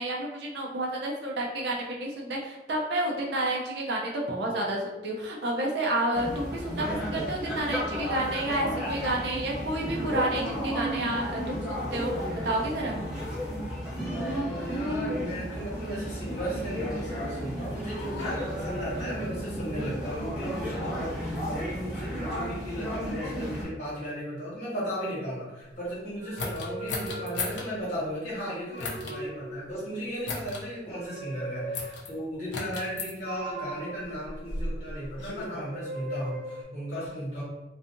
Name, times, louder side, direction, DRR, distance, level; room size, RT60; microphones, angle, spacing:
voice 1, 0.0-12.1 12.4-13.0, right 1 dB, 65° right, -1 dB, 0.5 m, -30 dB
sound 1, 6.1-23.6, equal, 5° right, 1.0 m, -33 dB
voice 2, 14.1-37.4, equal, 40° left, -8 dB, 1.5 m, -35 dB
sound 2, 26.1-27.9 28.5-29.8 30.8-32.2 33.2-35.1 35.7-36.6, right 2 dB, 85° right, 1.0 m, -40 dB
sound 3, 26.4-27.7 28.8-29.2 30.2-30.6 31.7-32.1 32.5-33.1 34.0-35.5, left 3 dB, 75° left, 0.5 m, -35 dB
2.7 x 2.3 x 2.5 m, 1.1 s
head